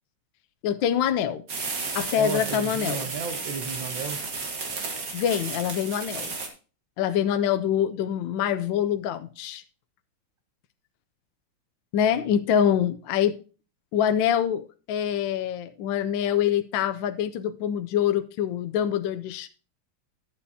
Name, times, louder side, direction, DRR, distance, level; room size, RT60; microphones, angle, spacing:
voice 1, 0.6-1.4 1.9-3.1 5.1-6.3 7.0-9.6 11.9-13.3 13.9-19.5, left 9 dB, 75° left, 1.3 m, -25 dB
sound 1, 1.5-6.5, right 4 dB, 45° right, 1.8 m, -33 dB
voice 2, 2.2-4.2, right 6 dB, 70° right, 1.7 m, -33 dB
11.5 x 8.4 x 2.7 m
omnidirectional pair, 2.2 m